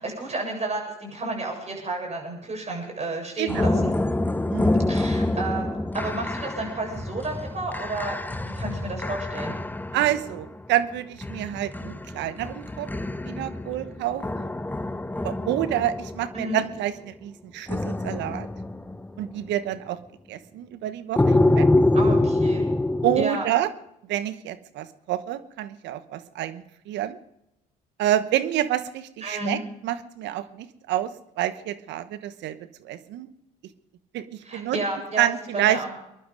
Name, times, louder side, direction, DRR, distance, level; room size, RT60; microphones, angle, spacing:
voice 1, 0.0-3.9 4.9-5.7 5.9-9.5 16.3-16.6 21.9-22.6 23.2-23.4 29.2-29.6 34.4-35.9, right 2 dB, 35° right, 1 dB, 7.7 m, -31 dB
voice 2, 3.4-3.8 4.5-4.9 9.9-12.9 13.2-14.5 15.2-18.5 19.2-20.0 20.3-21.7 23.0-23.7 24.1-27.2 28.0-31.1 31.4-32.6 32.8-33.3 34.1-34.8 35.2-35.8, right 12 dB, 70° right, 13 dB, 1.1 m, -28 dB
sound 1, 3.5-10.7 11.2-16.8 17.7-19.3 21.2-23.2, left 2 dB, 10° left, 0.8 m, -25 dB
23.0 x 11.0 x 5.2 m, 0.85 s
hypercardioid pair, 60°, 19 cm